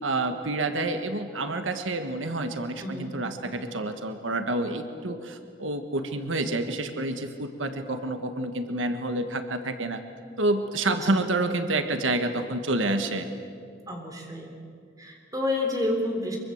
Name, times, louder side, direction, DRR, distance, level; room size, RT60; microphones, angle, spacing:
voice 1, 0.0-10.0 10.4-13.3, right 2 dB, 85° right, 7 dB, 1.5 m, -28 dB
voice 2, 2.8-3.1 11.0-11.1 13.9-14.5 15.0-16.4, left 2 dB, 20° right, 2 dB, 3.5 m, -29 dB
24.0 x 23.0 x 7.9 m, 2.3 s
head